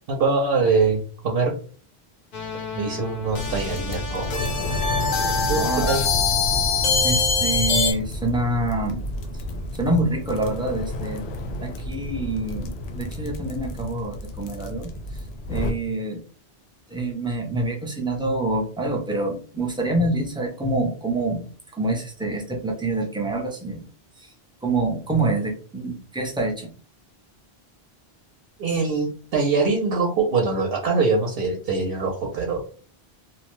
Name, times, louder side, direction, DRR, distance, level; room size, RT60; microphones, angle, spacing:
voice 1, 0.1-1.6 2.7-4.7 5.5-6.0 28.6-32.6, right 4 dB, 70° right, 0 dB, 0.8 m, -23 dB
sound 1, 2.3-7.9, left 5 dB, 55° left, 0.5 m, -24 dB
sound 2, 3.2-15.7, left 1 dB, 85° left, 0.8 m, -31 dB
voice 2, 5.5-6.0 7.0-9.0 9.8-11.2 11.6-14.9 15.5-16.2 16.9-21.5 21.7-23.8 24.2-24.3 24.6-26.7, right 2 dB, 5° right, 1 dB, 0.4 m, -26 dB
2.6 x 2.1 x 3.0 m, 0.42 s
omnidirectional pair, 1.1 m